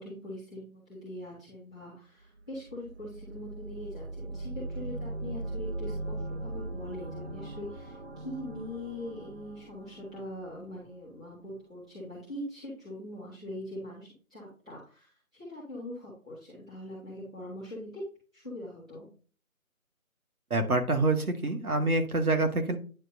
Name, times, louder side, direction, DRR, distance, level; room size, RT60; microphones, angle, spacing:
voice 1, 0.0-18.0 18.3-19.1, left 1 dB, 5° right, -13 dB, 1.2 m, -42 dB
sound 1, 2.3-11.2, right 2 dB, 50° right, 0.9 m, -40 dB
voice 2, 20.5-22.8, right 2 dB, 90° right, 6 dB, 1.7 m, -26 dB
9.6 x 4.7 x 2.6 m, 0.39 s
figure-of-eight pair, 170°, 42 cm